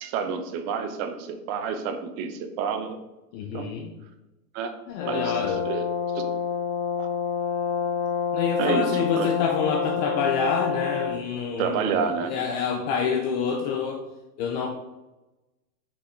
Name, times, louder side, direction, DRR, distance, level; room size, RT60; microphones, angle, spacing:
voice 1, 0.0-3.0 3.5-3.7 4.5-4.7 5.1-5.4 5.6-5.9 6.1-6.2 7.0-7.1 8.6-8.8 9.2-9.3 11.6-12.3, right 6 dB, 35° right, 8 dB, 0.7 m, -29 dB
voice 2, 3.3-3.9 4.9-5.7 8.3-14.0 14.4-14.7, left 6 dB, 30° left, 4 dB, 0.5 m, -27 dB
Brass instrument, 5.0-11.2, left 6 dB, 45° left, 0.9 m, -28 dB
5.8 x 4.1 x 4.6 m, 1.0 s
hypercardioid pair, 125°, 47 cm